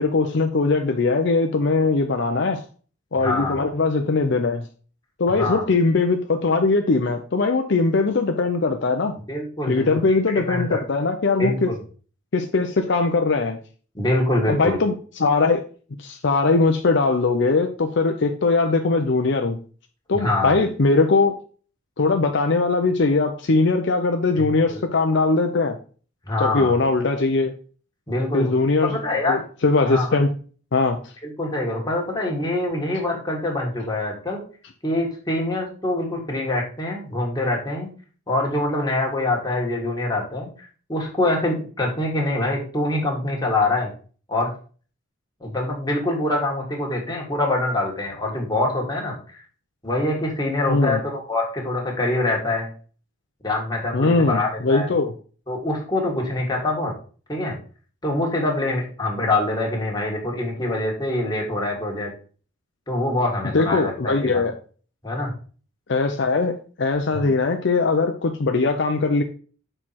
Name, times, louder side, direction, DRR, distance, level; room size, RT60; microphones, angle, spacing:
voice 1, 0.0-2.6 3.1-4.7 5.2-9.1 9.7-11.7 12.3-13.6 14.5-15.7 16.0-19.6 20.1-21.4 22.0-25.8 26.4-27.5 28.3-30.3 30.7-31.0 50.7-51.0 53.9-55.1 63.5-64.5 65.9-69.2, left 3 dB, 60° left, 5 dB, 0.6 m, -20 dB
voice 2, 3.2-3.6 5.4-5.6 9.3-10.0 10.5-10.8 11.4-11.8 14.0-14.8 20.1-20.5 24.4-24.8 26.3-26.7 28.1-28.5 28.8-29.4 29.8-30.1 31.2-34.4 34.8-37.9 38.3-40.5 40.9-43.9 44.3-44.5 45.4-49.4 49.8-52.7 53.4-54.9 55.5-56.9 57.3-57.6 58.0-62.1 62.9-64.4 65.0-65.3 67.1-67.3, left 2 dB, 20° left, -1 dB, 1.8 m, -24 dB
6.5 x 4.5 x 4.2 m, 0.39 s
head